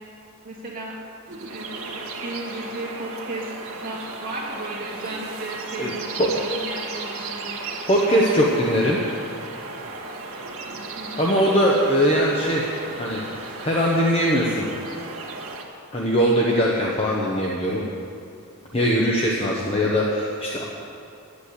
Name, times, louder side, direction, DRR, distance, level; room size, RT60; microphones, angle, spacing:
voice 1, 0.4-0.9 1.4-3.5 3.8-7.6 10.9-11.3, right 2 dB, 40° right, -4 dB, 2.3 m, -34 dB
sound 1, 1.3-15.6, right 3 dB, 70° right, 1.8 m, -35 dB
voice 2, 7.9-9.0 11.2-12.7 13.0-14.7 15.9-17.8 18.7-20.6, equal, 25° left, -4 dB, 1.0 m, -21 dB
11.0 x 8.5 x 8.2 m, 2.5 s
head